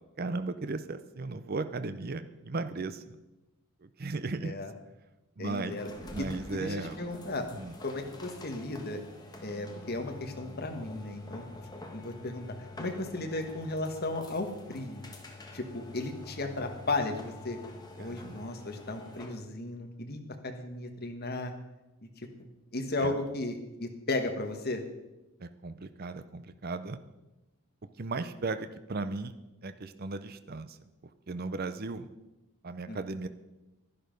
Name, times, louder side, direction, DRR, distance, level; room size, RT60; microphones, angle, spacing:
voice 1, 0.2-3.2 3.8-4.5 5.4-5.7 6.1-7.0 7.5-7.7 18.0-18.4 23.0-23.1 25.4-27.0 28.0-29.3 29.6-30.8 31.3-32.1 32.6-33.3, right 3 dB, 45° right, 11 dB, 0.6 m, -36 dB
voice 2, 5.4-5.9 6.2-7.5 7.8-9.0 9.4-11.4 11.9-15.0 15.5-17.6 18.0-21.5 22.7-24.8 32.9-33.0, left 2 dB, 45° left, 4 dB, 1.4 m, -35 dB
sound 1, 5.7-19.4, left 2 dB, 20° left, 1.4 m, -47 dB
11.0 x 11.0 x 5.2 m, 1.0 s
head